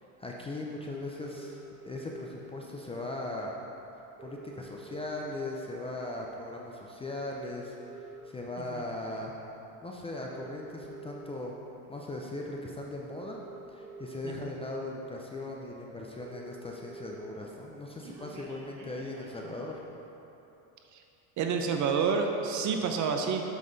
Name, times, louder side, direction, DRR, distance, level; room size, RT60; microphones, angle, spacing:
voice 1, 0.2-3.5 4.2-9.3 9.8-11.5 11.9-13.4 13.7-19.8, left 2 dB, 15° left, -1 dB, 0.5 m, -39 dB
sound 1, 1.2-2.2 3.4-3.5 3.7-3.8 4.0-5.5 6.0-6.2 7.0-8.2 8.9-9.1 10.0-11.2 12.4-12.5 13.0-14.2 14.9-15.0 15.3-15.4 15.6-15.7 15.9-17.2 17.5-19.7, right 5 dB, 75° right, 1.5 m, -48 dB
voice 2, 21.4-23.4, right 5 dB, 40° right, 4 dB, 0.8 m, -29 dB
7.3 x 5.8 x 4.0 m, 2.9 s
supercardioid pair, 100°, 46 cm